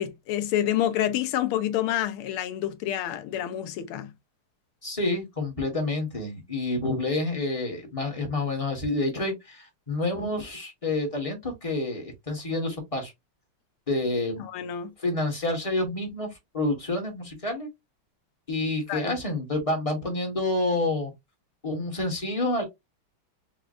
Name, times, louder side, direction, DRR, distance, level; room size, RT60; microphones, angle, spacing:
voice 1, 0.0-4.1 14.4-14.9 18.9-19.2, left 11 dB, 80° left, 1.6 m, -28 dB
voice 2, 4.8-13.1 13.9-14.4 15.0-16.3 16.5-17.7 18.5-21.1 21.6-22.6, left 2 dB, 30° left, 0.6 m, -28 dB
5.7 x 2.0 x 2.4 m
omnidirectional pair, 2.4 m